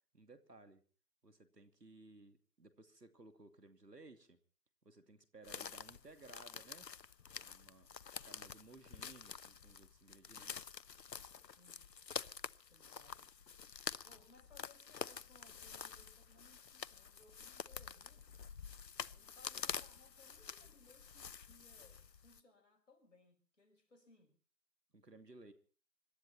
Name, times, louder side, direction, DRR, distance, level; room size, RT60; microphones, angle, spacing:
voice 1, 0.1-0.8 1.2-4.4 4.8-6.9 7.4-7.9 8.2-10.8 24.9-25.5, right 2 dB, 70° right, 2.8 m, -59 dB
sound 1, 5.4-22.4, left 6 dB, 85° left, 0.7 m, -48 dB
voice 2, 11.5-11.9 12.7-13.3 14.0-18.4 19.1-24.4, left 3 dB, 45° left, 5.0 m, -66 dB
26.0 x 12.0 x 4.3 m
figure-of-eight pair, 165°, 49 cm